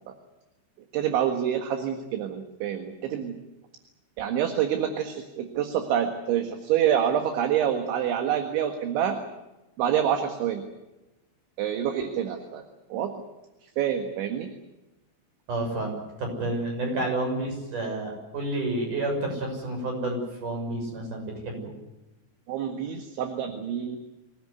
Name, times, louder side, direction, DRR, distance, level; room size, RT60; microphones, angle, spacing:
voice 1, 0.9-3.4 4.2-9.2 9.8-10.6 11.6-12.6 12.9-13.1 13.6-14.5 22.5-24.0, right 9 dB, 70° right, 6 dB, 3.8 m, -27 dB
voice 2, 15.5-21.7, right 2 dB, 40° right, 2 dB, 7.9 m, -30 dB
25.5 x 17.0 x 9.6 m, 1.0 s
omnidirectional pair, 5.9 m